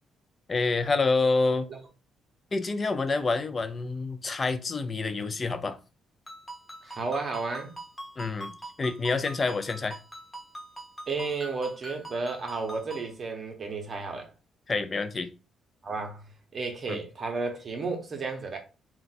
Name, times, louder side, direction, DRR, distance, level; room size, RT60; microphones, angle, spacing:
voice 1, 0.5-1.7 2.5-5.8 8.2-10.0 14.7-15.3 16.9-17.0, left 3 dB, 35° left, 0.4 m, -27 dB
Ringtone, 6.3-13.1, right 1 dB, 10° left, 0.9 m, -44 dB
voice 2, 6.8-7.8 11.1-14.3 15.8-16.2 16.5-18.6, right 4 dB, 45° right, 0.7 m, -32 dB
2.4 x 2.2 x 4.0 m
cardioid pair, 90°, 0 cm